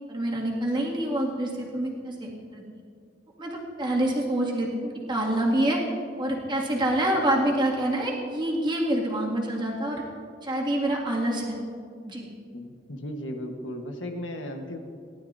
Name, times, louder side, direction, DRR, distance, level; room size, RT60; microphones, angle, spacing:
voice 1, 0.1-2.6 3.4-5.8 6.2-10.0 10.4-11.6 12.0-12.3, right 1 dB, 25° right, -4 dB, 2.2 m, -26 dB
voice 2, 12.5-14.8, left 1 dB, 85° left, 4 dB, 1.4 m, -35 dB
19.0 x 11.5 x 2.7 m, 2.2 s
head